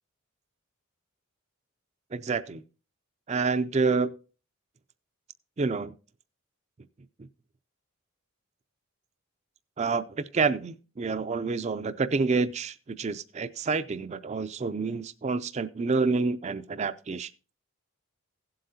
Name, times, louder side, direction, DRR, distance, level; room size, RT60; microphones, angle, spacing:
voice 1, 2.1-2.6 3.3-4.1 5.6-5.9 9.8-10.0 10.3-17.3, right 4 dB, 30° right, 0.4 m, -28 dB
16.5 x 7.7 x 2.7 m
head